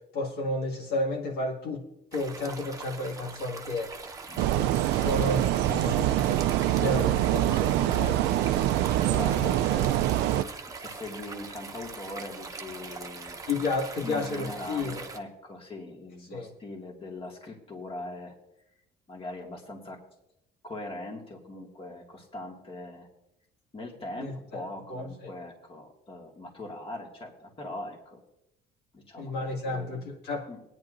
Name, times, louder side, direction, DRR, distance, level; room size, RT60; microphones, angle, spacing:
voice 1, 0.1-1.9 2.1-3.9 4.5-8.5 9.4-9.6 13.5-15.0 16.3-16.5 24.2-24.6 24.9-25.1 29.2-30.5, left 2 dB, 75° left, -1 dB, 2.0 m, -32 dB
sound 1, 2.1-15.2, right 4 dB, 20° right, 0.9 m, -42 dB
voice 2, 4.3-5.1 5.6-5.7 7.7-8.5 9.1-13.4 14.0-18.3 19.1-20.0 20.6-23.1 23.7-28.2 28.9-30.0 30.5-30.6, left 2 dB, 35° left, 1 dB, 2.0 m, -41 dB
sound 2, 4.4-10.4, right 13 dB, 85° right, 0.4 m, -25 dB
20.0 x 9.7 x 2.6 m, 0.84 s
cardioid pair, 110°, 17 cm